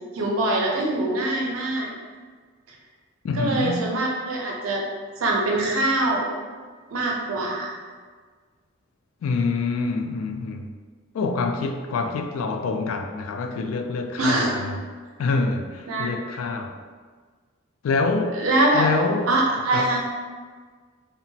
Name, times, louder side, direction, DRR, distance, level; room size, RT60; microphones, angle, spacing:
voice 1, 0.1-1.9 3.4-4.8 5.2-6.3 6.9-7.8 14.2-14.5 15.9-16.1 18.3-18.9 19.3-20.0, right 2 dB, 90° right, -1 dB, 0.5 m, -23 dB
voice 2, 3.2-3.9 9.2-10.7 11.1-14.8 15.2-16.8 17.8-18.4 18.7-19.3 19.7-20.0, left 3 dB, 90° left, 5 dB, 0.3 m, -26 dB
2.9 x 2.1 x 2.7 m, 1.5 s
head